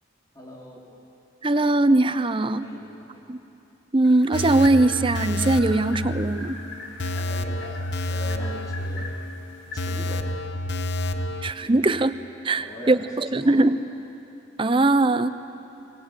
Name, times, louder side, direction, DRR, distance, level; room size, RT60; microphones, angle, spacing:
voice 1, 0.3-1.0 2.5-3.3 7.1-9.1 9.7-10.2 11.1-11.2 11.6-11.7 12.6-13.6, equal, 20° left, -4 dB, 3.8 m, -42 dB
voice 2, 1.4-2.7 3.3-3.4 3.9-6.6 11.4-12.1 12.4-13.8 14.6-15.3, right 2 dB, 25° right, 12 dB, 0.6 m, -20 dB
sound 1, 4.0-10.3, left 3 dB, 90° left, 2.4 m, -42 dB
sound 2, 4.3-11.5, left 1 dB, 65° left, 0.9 m, -29 dB
23.5 x 20.0 x 8.2 m, 2.8 s
head